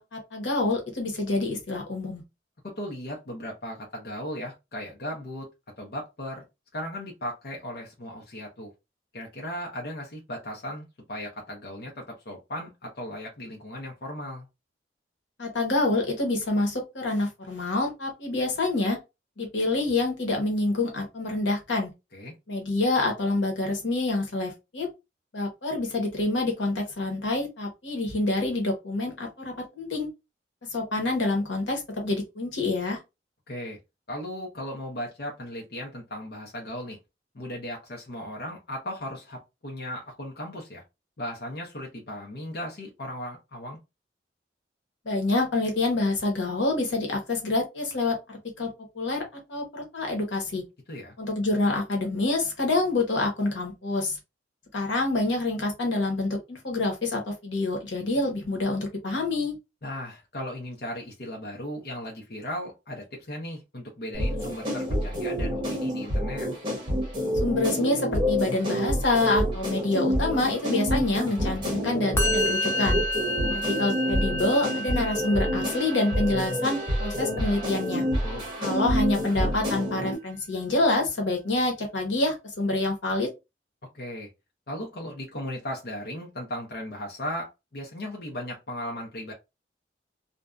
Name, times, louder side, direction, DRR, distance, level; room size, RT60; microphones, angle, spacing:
voice 1, 0.1-2.2 15.4-19.0 19.4-21.9 22.5-24.9 25.3-30.1 30.7-33.0 45.0-49.2 49.5-50.6 51.2-54.2 54.7-59.5 67.4-73.0 73.5-78.0 78.6-83.3, left 2 dB, 85° left, 1.0 m, -27 dB
voice 2, 2.6-5.5 5.8-6.4 6.7-8.7 9.1-14.5 22.1-22.3 33.5-33.8 34.1-37.0 37.3-40.8 41.2-43.8 50.9-51.1 59.8-66.5 78.2-78.5 83.9-84.3 84.7-89.3, left 1 dB, 55° left, 0.6 m, -36 dB
sound 1, 64.1-80.1, equal, 25° right, 0.8 m, -28 dB
Musical instrument, 72.2-79.4, left 1 dB, 15° left, 0.5 m, -33 dB
2.6 x 2.2 x 2.3 m
head